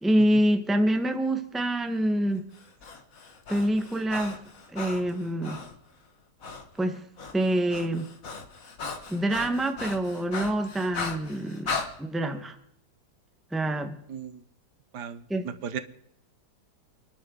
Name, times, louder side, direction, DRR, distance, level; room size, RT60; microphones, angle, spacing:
voice 1, 0.0-2.5 3.5-4.4 4.7-5.6 6.8-7.0 7.3-8.1 9.1-11.7 12.0-12.6 13.5-13.9 15.3-15.5, right 1 dB, ahead, 6 dB, 1.0 m, -26 dB
Breathing, 2.5-5.8 6.4-6.7 6.9-11.9, left 4 dB, 55° left, 2.0 m, -37 dB
voice 2, 14.1-14.4 14.9-15.8, right 7 dB, 80° right, 11 dB, 1.5 m, -36 dB
29.5 x 11.0 x 3.8 m, 0.74 s
omnidirectional pair, 1.8 m